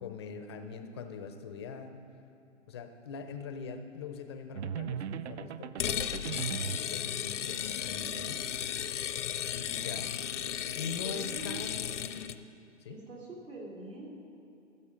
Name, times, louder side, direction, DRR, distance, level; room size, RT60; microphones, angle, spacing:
voice 1, 0.0-2.0 2.7-8.4 9.5-10.1 10.8-12.2 12.8-13.0, left 5 dB, 20° left, 7 dB, 0.4 m, -42 dB
sound 1, 4.6-6.9, right 8 dB, 65° right, 0.5 m, -38 dB
sound 2, 5.8-12.4, left 9 dB, 70° left, 0.6 m, -35 dB
voice 2, 11.0-11.7 12.9-14.1, right 3 dB, 80° right, -3 dB, 3.0 m, -44 dB
15.0 x 6.9 x 5.0 m, 2.7 s
hypercardioid pair, 135°, 37 cm